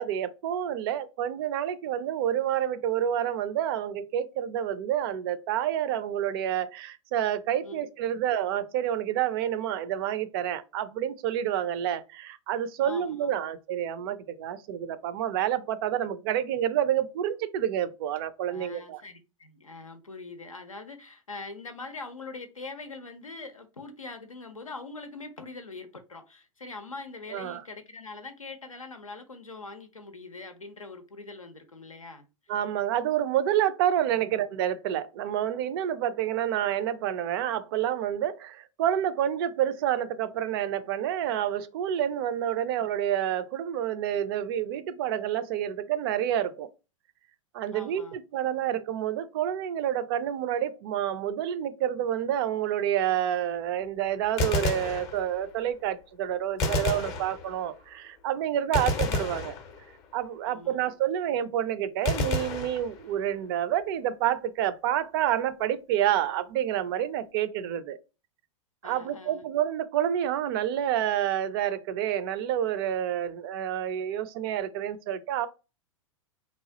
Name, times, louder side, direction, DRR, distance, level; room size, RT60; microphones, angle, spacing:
voice 1, 0.0-19.0 27.3-27.6 32.5-46.7 47.5-59.5 60.1-68.0 68.8-75.5, right 10 dB, 45° right, 0.4 m, -28 dB
voice 2, 12.8-13.4 18.5-32.3 34.2-34.3 47.7-48.2 58.7-58.9 60.4-60.9 68.8-69.4, left 3 dB, 90° left, 0.5 m, -43 dB
Gunshot gunfire, 54.2-55.6 56.6-57.8 58.7-60.2 62.1-63.4, left 2 dB, 35° left, 0.6 m, -30 dB
3.0 x 2.3 x 2.7 m
figure-of-eight pair, 95°, 17 cm